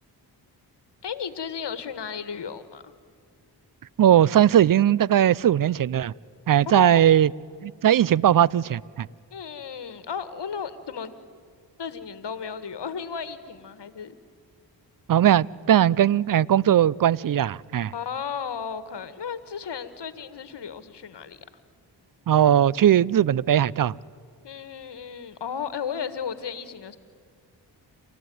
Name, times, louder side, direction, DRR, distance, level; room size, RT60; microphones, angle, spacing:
voice 1, 1.0-2.9 6.7-6.9 9.3-11.1 11.8-14.2 17.9-21.4 24.4-27.0, left 6 dB, 60° left, 13 dB, 1.6 m, -34 dB
voice 2, 4.0-6.1 6.5-7.3 7.6-9.1 15.1-17.9 22.3-23.9, right 10 dB, 50° right, 25 dB, 0.5 m, -19 dB
28.0 x 14.0 x 9.3 m, 2.1 s
cardioid pair, 45°, 45 cm